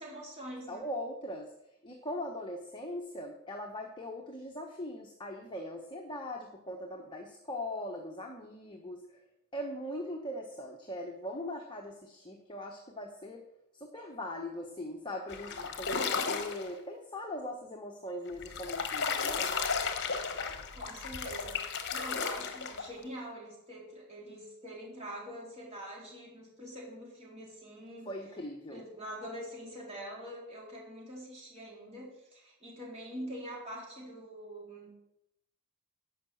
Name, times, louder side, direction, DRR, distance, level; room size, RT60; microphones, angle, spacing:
voice 1, 0.0-0.9 20.7-28.1 28.7-34.9, equal, 30° right, -3 dB, 3.5 m, -44 dB
voice 2, 0.7-1.5 1.8-9.2 9.5-13.4 13.7-20.0 28.0-28.9, left 1 dB, 20° left, 1 dB, 1.0 m, -40 dB
sound 1, 15.3-16.7 18.3-23.0, left 5 dB, 50° left, 1.1 m, -34 dB
11.5 x 5.7 x 7.7 m, 0.83 s
head